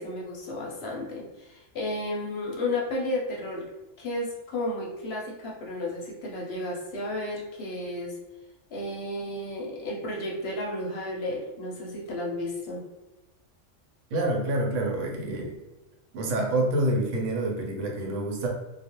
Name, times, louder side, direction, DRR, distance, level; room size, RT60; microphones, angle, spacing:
voice 1, 0.0-3.6 4.0-8.1 8.7-12.8, left 1 dB, 65° left, -2 dB, 0.7 m, -33 dB
voice 2, 14.1-15.6 16.1-18.5, right 1 dB, 80° right, 0 dB, 0.9 m, -27 dB
2.3 x 2.0 x 2.8 m, 1.0 s
omnidirectional pair, 1.3 m